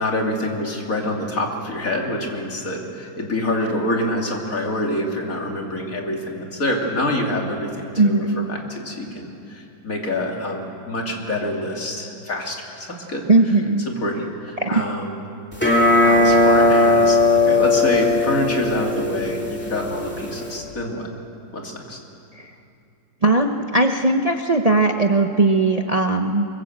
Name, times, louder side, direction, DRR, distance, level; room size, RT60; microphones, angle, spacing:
voice 1, 0.0-13.3 14.0-15.2 16.0-21.1 21.5-22.0, left 1 dB, 45° left, 0 dB, 3.2 m, -26 dB
voice 2, 8.0-8.5 13.3-13.8 14.6-14.8 22.4-22.5 23.2-26.5, right 2 dB, 40° right, 5 dB, 0.5 m, -18 dB
sound 1, 15.5-20.6, left 2 dB, 5° left, 2.7 m, -18 dB
24.5 x 22.5 x 7.9 m, 2.6 s
omnidirectional pair, 2.0 m